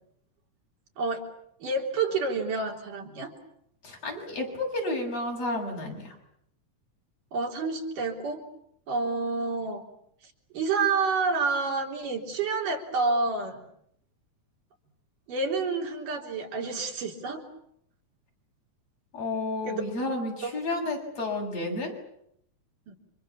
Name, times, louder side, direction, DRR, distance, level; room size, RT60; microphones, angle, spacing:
voice 1, 1.0-1.3 1.6-3.3 7.3-8.4 8.9-9.8 10.5-13.6 15.3-17.4 19.6-19.8 20.1-20.6 22.9-23.0, right 4 dB, 90° right, 2 dB, 5.0 m, -29 dB
voice 2, 3.8-6.1 19.1-21.9, left 2 dB, 50° left, 1 dB, 8.3 m, -31 dB
30.0 x 27.0 x 7.2 m, 0.73 s
omnidirectional pair, 3.6 m